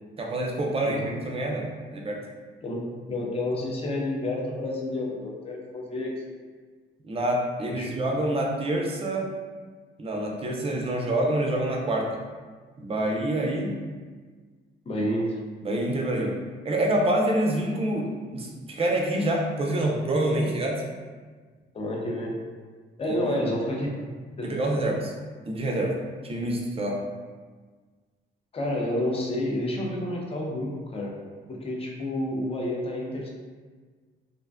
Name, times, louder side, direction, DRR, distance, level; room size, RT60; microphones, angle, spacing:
voice 1, 0.2-1.7 1.9-2.2 7.0-9.3 10.0-12.1 12.8-13.8 15.6-16.4 16.6-20.8 23.0-23.4 24.4-25.1 25.5-25.9 26.2-27.0, right 1 dB, 30° right, 0 dB, 0.4 m, -26 dB
voice 2, 2.6-6.1 7.7-7.9 14.9-15.4 21.7-22.4 23.0-24.0 24.4-24.8 28.5-31.1 31.5-33.3, left 1 dB, 30° left, -1 dB, 0.5 m, -29 dB
2.5 x 2.1 x 2.4 m, 1.5 s
cardioid pair, 90°, 20 cm